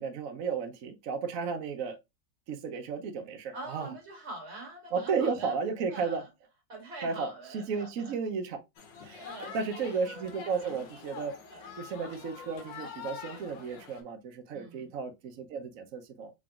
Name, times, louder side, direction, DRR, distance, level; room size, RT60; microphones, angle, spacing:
voice 1, 0.0-2.0 2.5-3.9 4.9-6.2 7.0-8.6 9.0-9.3 9.5-11.4 11.8-16.3, right 5 dB, 60° right, 0.9 m, -33 dB
voice 2, 3.5-5.6 5.9-6.3 6.7-8.2 9.2-9.8 10.5-10.8 11.5-11.7 14.5-14.9, right 2 dB, 35° right, 1.7 m, -44 dB
sound 1, 8.8-14.0, left 6 dB, 75° left, 1.6 m, -45 dB
3.8 x 3.8 x 2.3 m
omnidirectional pair, 2.0 m